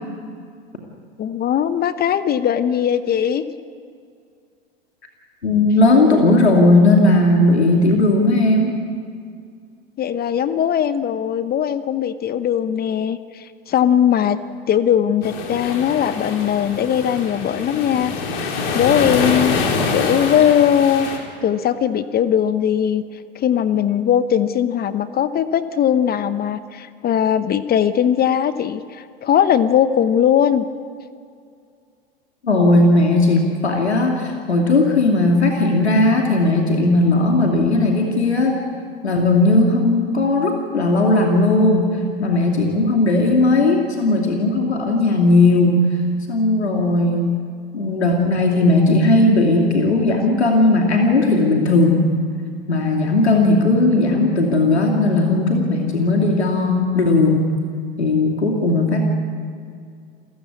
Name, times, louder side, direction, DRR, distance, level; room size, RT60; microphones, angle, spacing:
voice 1, 1.2-3.4 10.0-14.4 14.7-18.1 18.7-19.6 19.9-21.1 21.4-23.0 23.3-30.6, left 9 dB, 30° left, 13 dB, 1.0 m, -19 dB
voice 2, 5.4-8.8 32.4-38.6 39.0-45.8 46.3-47.4 47.7-52.0 52.7-57.5 58.0-59.0, left 2 dB, 90° left, 1 dB, 2.7 m, -16 dB
sound 1, 15.2-21.2, left 4 dB, 60° left, 4.1 m, -25 dB
28.0 x 15.5 x 8.5 m, 2.3 s
hypercardioid pair, 90°, 32 cm